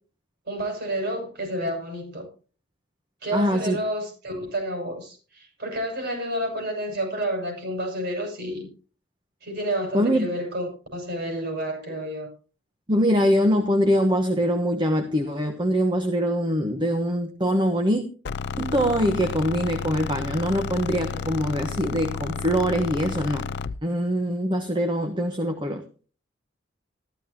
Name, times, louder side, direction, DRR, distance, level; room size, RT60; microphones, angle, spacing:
voice 1, 0.5-2.3 3.2-8.7 9.4-12.3, right 1 dB, 60° right, 6.8 m, -30 dB
voice 2, 3.3-3.8 9.9-10.3 12.9-18.0 18.6-23.5 23.8-25.8, equal, 25° right, 1.2 m, -23 dB
sound 1, 18.3-23.8, left 5 dB, 60° left, 0.5 m, -31 dB
14.0 x 13.0 x 3.0 m
head